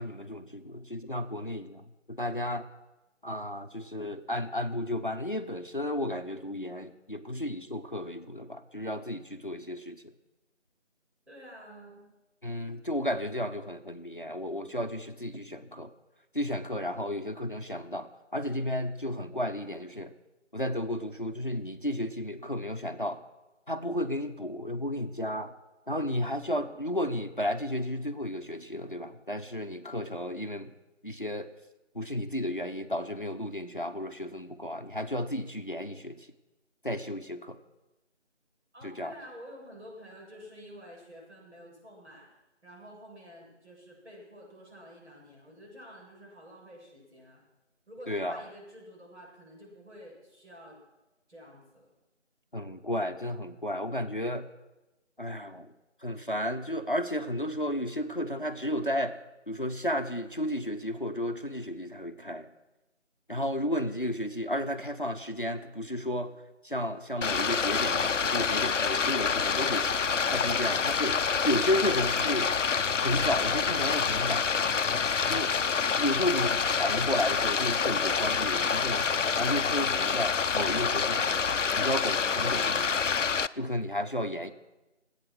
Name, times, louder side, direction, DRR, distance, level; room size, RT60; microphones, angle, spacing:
voice 1, 0.0-2.7 3.2-10.0 12.4-15.9 16.3-20.1 20.5-23.2 23.7-25.5 25.9-30.7 31.0-31.5 31.9-36.3 36.8-37.6 38.8-39.1 48.1-48.4 52.5-54.5 55.2-55.7 56.0-59.2 59.5-62.5 63.3-66.4 66.6-72.5 73.0-74.4 75.3-75.5 76.0-83.0 83.6-84.5, left 1 dB, 45° left, 8 dB, 0.8 m, -33 dB
voice 2, 11.3-12.1 38.7-42.3 42.6-47.4 47.9-50.8 51.3-51.9, equal, 65° right, -3 dB, 7.8 m, -49 dB
Stream, 67.2-83.5, left 5 dB, 85° left, 0.6 m, -27 dB
24.0 x 8.9 x 6.1 m, 1.0 s
figure-of-eight pair, 180°, 36 cm